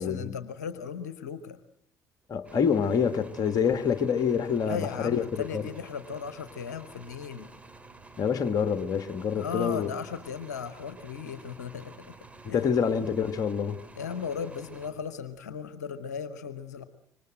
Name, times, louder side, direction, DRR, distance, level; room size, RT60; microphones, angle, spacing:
voice 1, 0.0-1.6 4.6-7.5 9.3-12.1 12.5-12.7 14.0-16.8, left 6 dB, 75° left, 1.0 m, -36 dB
voice 2, 2.3-5.7 8.2-10.0 12.4-13.8, left 7 dB, 45° left, 1.6 m, -27 dB
sound 1, 2.4-15.4, right 3 dB, 15° right, 3.3 m, -51 dB
26.5 x 24.0 x 7.8 m
figure-of-eight pair, 50°, 9 cm